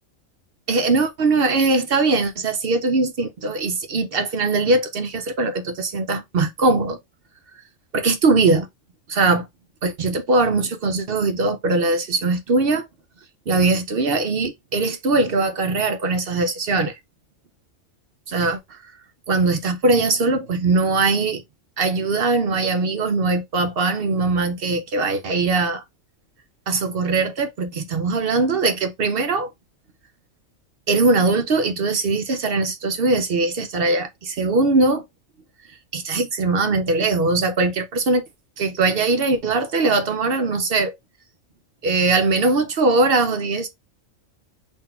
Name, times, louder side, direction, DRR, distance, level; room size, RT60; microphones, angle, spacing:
voice 1, 0.7-7.0 7.9-8.7 9.1-9.5 9.8-12.9 13.5-17.0 18.3-18.9 19.3-21.4 21.8-25.8 26.7-29.5 30.9-35.0 35.9-38.3 38.6-40.9 41.8-43.7, right 3 dB, 55° right, 0.7 m, -21 dB
3.9 x 2.6 x 4.2 m
omnidirectional pair, 1.4 m